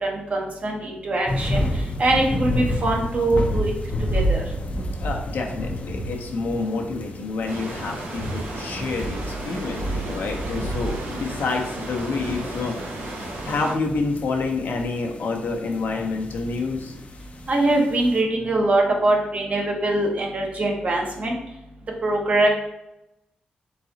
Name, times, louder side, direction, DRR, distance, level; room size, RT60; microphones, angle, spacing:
voice 1, 0.0-1.7 2.0-3.7 4.1-4.4 17.5-21.3 22.0-22.5, right 2 dB, 45° right, 0 dB, 1.1 m, -22 dB
sound 1, 1.3-18.2, equal, 40° left, 0.6 m, -30 dB
voice 2, 5.0-12.8 13.4-16.9, left 3 dB, 75° left, 2 dB, 0.8 m, -28 dB
sound 2, 7.5-13.7, right 2 dB, 80° right, 0.9 m, -34 dB
4.0 x 3.8 x 2.8 m, 0.89 s
cardioid pair, 75°, 3 cm